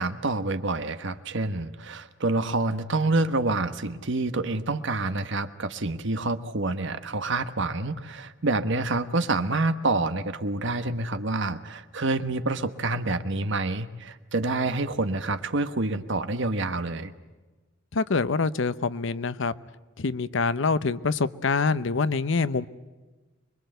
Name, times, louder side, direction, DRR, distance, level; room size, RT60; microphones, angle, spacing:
voice 1, 0.0-17.1, right 2 dB, 65° right, 10 dB, 1.3 m, -27 dB
voice 2, 17.9-19.5 20.0-22.7, left 4 dB, 70° left, 15 dB, 0.8 m, -25 dB
25.5 x 22.0 x 8.0 m, 1.2 s
head